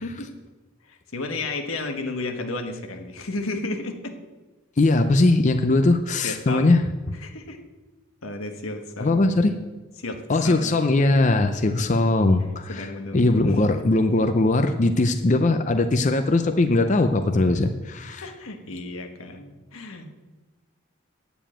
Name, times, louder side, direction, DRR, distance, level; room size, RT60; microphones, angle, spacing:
voice 1, 0.8-4.2 6.2-6.8 7.1-7.6 8.2-9.4 10.0-10.8 12.7-13.5 18.2-20.1, left 2 dB, 90° left, 5 dB, 1.4 m, -33 dB
voice 2, 4.8-6.8 9.0-9.5 10.3-18.2, left 2 dB, 35° left, 7 dB, 0.5 m, -20 dB
9.1 x 7.0 x 8.8 m, 1.2 s
head